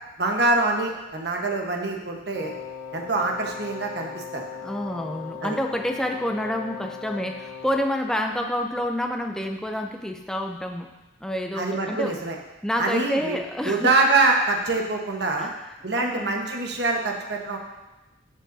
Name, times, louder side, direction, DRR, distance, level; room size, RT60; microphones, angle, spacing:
voice 1, 0.2-2.5 2.9-4.6 5.4-5.6 11.6-12.3 12.8-13.4 13.6-15.5 15.8-17.6, right 2 dB, 55° right, 1 dB, 1.2 m, -24 dB
Wind instrument woodwind instrument, 2.3-8.0, left 7 dB, 25° left, 1.6 m, -38 dB
voice 2, 4.6-10.9 11.2-12.1 12.6-13.9 15.4-15.5 15.9-16.3 17.5-17.6, equal, 5° left, 3 dB, 0.5 m, -28 dB
13.5 x 6.7 x 2.7 m, 1.0 s
head